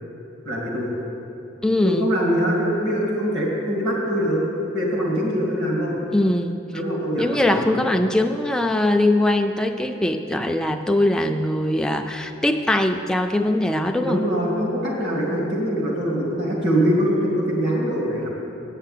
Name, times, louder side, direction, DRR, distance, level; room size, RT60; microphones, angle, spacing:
voice 1, 0.4-0.9 1.8-4.4 4.7-6.0 6.7-7.8 14.0-18.3, equal, 60° right, -3 dB, 2.4 m, -23 dB
voice 2, 1.6-2.1 6.1-6.6 7.2-14.2, left 1 dB, 5° left, 5 dB, 0.3 m, -21 dB
8.7 x 6.6 x 8.3 m, 3.0 s
head